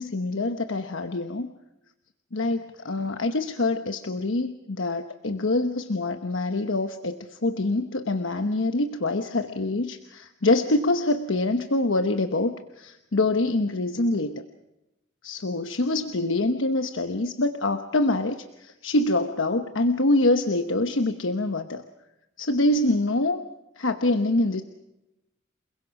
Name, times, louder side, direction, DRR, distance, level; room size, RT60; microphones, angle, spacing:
voice 1, 0.0-1.5 2.3-14.4 15.2-21.8 22.4-23.4 23.8-24.6, left 2 dB, 75° left, 7 dB, 1.1 m, -25 dB
29.0 x 21.5 x 5.9 m, 0.95 s
head